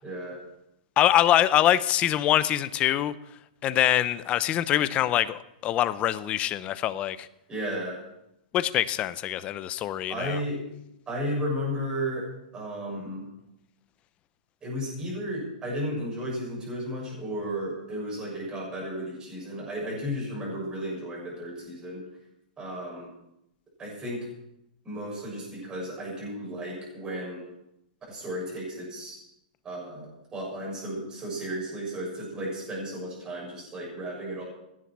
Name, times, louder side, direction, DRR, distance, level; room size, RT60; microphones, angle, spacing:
voice 1, 0.0-0.4 7.5-8.0 10.1-10.6 11.1-12.2 12.5-13.2 14.6-22.0 22.6-23.1 23.8-24.2 24.8-27.4 28.1-29.2 29.6-34.4, equal, 15° right, 6.9 m, -34 dB
voice 2, 1.0-3.1 3.6-7.3 8.5-10.4, left 12 dB, 25° left, 0.7 m, -24 dB
16.5 x 10.0 x 6.0 m
hypercardioid pair, 145°, 5 cm